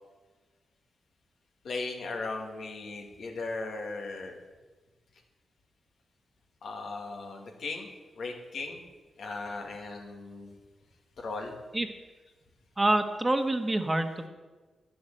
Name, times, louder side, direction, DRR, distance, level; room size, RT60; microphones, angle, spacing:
voice 1, 1.6-4.4 6.6-8.8 9.2-10.6 11.2-11.6, left 3 dB, 75° left, 1 dB, 2.2 m, -37 dB
voice 2, 12.8-14.3, right 1 dB, 25° right, 7 dB, 1.4 m, -26 dB
10.5 x 7.7 x 7.9 m, 1.3 s
supercardioid pair, 50°, 0 cm